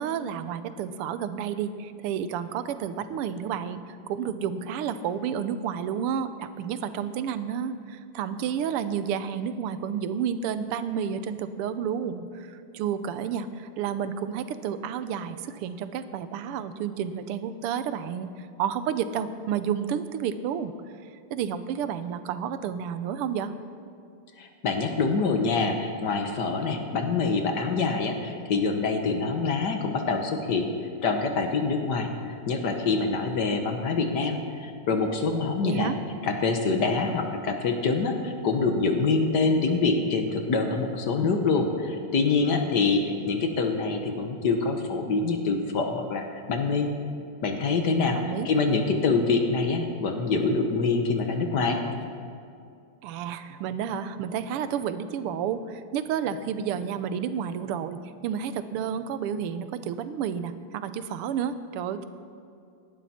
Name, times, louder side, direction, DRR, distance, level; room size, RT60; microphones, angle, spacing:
voice 1, 0.0-20.7 21.3-23.5 35.6-36.0 48.1-48.5 53.0-62.0, right 8 dB, 90° right, 12 dB, 1.6 m, -31 dB
voice 2, 24.4-30.7 31.0-35.9 36.2-46.9 47.4-51.8, left 4 dB, 55° left, 5 dB, 1.5 m, -25 dB
18.0 x 11.5 x 4.3 m, 2.4 s
omnidirectional pair, 2.4 m